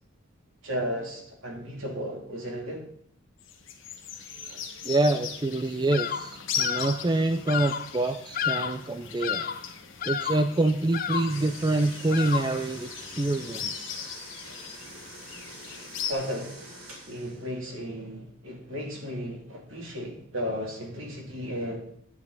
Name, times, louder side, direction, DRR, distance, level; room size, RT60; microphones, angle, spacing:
voice 1, 0.6-2.8 4.5-4.6 16.1-16.6 17.1-21.9, equal, 65° right, -1 dB, 3.1 m, -34 dB
sound 1, 3.4-16.1, left 7 dB, 60° left, 1.4 m, -39 dB
voice 2, 4.8-9.5 10.0-12.9 13.2-14.1, right 2 dB, 20° right, 8 dB, 0.4 m, -26 dB
Bird vocalization bird call bird song, 5.9-6.3 6.6-7.0 7.5-7.9 8.3-8.9 9.2-9.7 10.0-10.5 10.9-11.4 12.1-12.6, left 8 dB, 40° left, 0.5 m, -31 dB
sound 2, 11.3-17.5, right 1 dB, 85° right, 4.2 m, -45 dB
11.0 x 9.8 x 4.0 m, 0.66 s
head